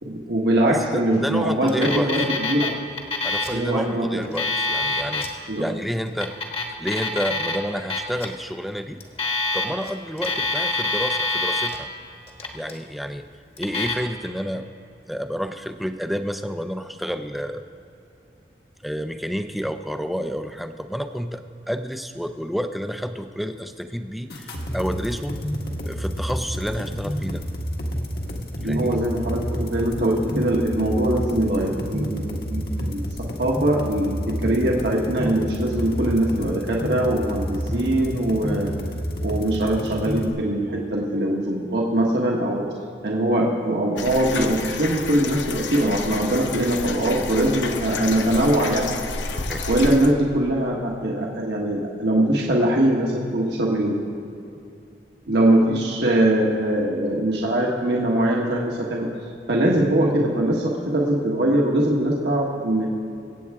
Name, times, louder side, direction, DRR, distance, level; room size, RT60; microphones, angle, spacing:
voice 1, 0.0-2.7 3.5-4.2 5.5-5.6 28.6-38.7 39.2-42.7 43.0-48.9 49.7-54.0 55.3-59.1 59.5-62.9, right 1 dB, 70° right, -2 dB, 1.3 m, -22 dB
voice 2, 0.7-2.1 3.2-6.3 6.8-9.0 9.5-11.9 12.5-13.3 13.6-14.7 15.1-17.6 18.8-25.3 25.8-27.4 28.6-29.0 49.5-49.6, equal, ahead, 8 dB, 0.4 m, -29 dB
Alarm, 1.7-2.7 3.0-3.6 4.2-5.3 6.1-7.6 7.9-8.3 9.0-9.9 10.2-11.8 12.3-12.8 13.6-13.9, left 3 dB, 30° left, 1.2 m, -25 dB
sound 1, 24.3-40.3, equal, 60° left, 1.5 m, -29 dB
sound 2, 44.0-50.1, left 3 dB, 90° left, 0.9 m, -30 dB
23.0 x 8.5 x 3.6 m, 2.7 s
head